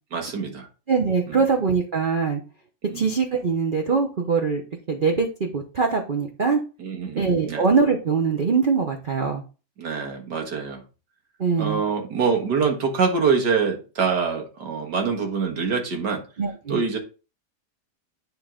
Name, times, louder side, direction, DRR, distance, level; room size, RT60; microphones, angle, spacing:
voice 1, 0.1-0.7 1.3-1.4 2.9-3.1 6.8-7.6 9.8-10.8 11.6-16.2 16.7-17.0, right 5 dB, 85° right, 2.2 m, -25 dB
voice 2, 0.9-2.4 2.9-4.6 4.9-6.6 7.1-9.4 11.4-11.8 16.4-16.8, right 5 dB, 40° right, 0.9 m, -22 dB
9.9 x 3.8 x 3.8 m
omnidirectional pair, 1.8 m